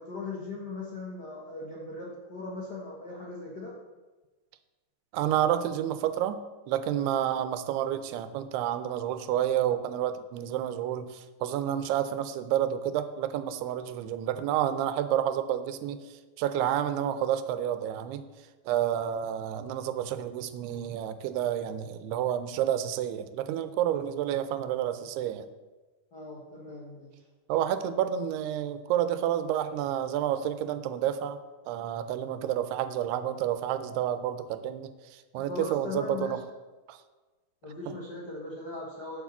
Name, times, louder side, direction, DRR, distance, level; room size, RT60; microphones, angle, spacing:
voice 1, 0.0-3.7 26.1-27.2 35.4-36.4 37.6-39.2, left 3 dB, 75° left, -4 dB, 0.9 m, -39 dB
voice 2, 5.1-6.4 6.7-16.0 16.4-18.3 18.7-25.5 27.5-31.4 31.7-36.4 36.9-37.0 37.9-38.0, right 11 dB, 90° right, 11 dB, 2.7 m, -29 dB
7.3 x 7.2 x 7.1 m, 1.2 s
omnidirectional pair, 4.6 m